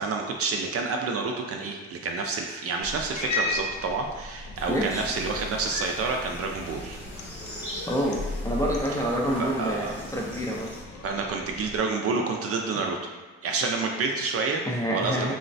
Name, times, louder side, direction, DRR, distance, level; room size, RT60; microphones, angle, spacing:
voice 1, 0.0-7.0 9.4-9.9 11.0-13.1 13.4-14.6 14.9-15.3, right 4 dB, 50° right, 2 dB, 0.4 m, -29 dB
Cat, 2.8-11.8, left 3 dB, 70° left, 0.5 m, -36 dB
sound 1, 4.5-10.8, equal, 5° right, 0.9 m, -42 dB
voice 2, 4.7-5.1 7.5-7.6 7.9-10.7 14.7-15.3, equal, 10° left, -3 dB, 0.4 m, -28 dB
3.1 x 2.1 x 2.5 m, 1.4 s
cardioid pair, 90°, 30 cm